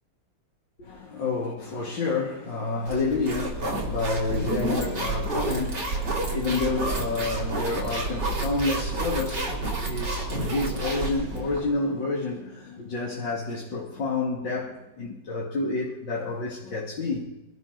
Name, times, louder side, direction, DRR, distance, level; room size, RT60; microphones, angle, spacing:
voice 1, 0.8-17.3, left 3 dB, 90° left, 3.0 m, -29 dB
sound 1, 2.9-11.7, right 2 dB, 65° right, 4.3 m, -30 dB
24.5 x 13.0 x 4.0 m
omnidirectional pair, 2.0 m